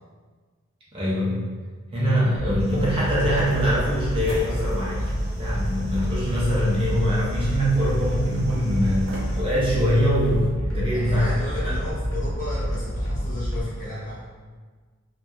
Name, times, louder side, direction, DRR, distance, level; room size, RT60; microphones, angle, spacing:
voice 1, 0.9-1.5 1.9-5.0 5.4-11.3 11.6-11.7, equal, 25° right, -8 dB, 0.5 m, -23 dB
sound 1, 2.4-13.6, equal, 85° left, 0.6 m, -28 dB
sound 2, 2.6-9.4, right 1 dB, 50° right, 0.9 m, -47 dB
sound 3, 2.7-10.5, right 1 dB, 80° right, 0.5 m, -43 dB
voice 2, 10.7-14.2, left 2 dB, 40° left, -9 dB, 0.8 m, -34 dB
2.6 x 2.2 x 2.2 m, 1.5 s
head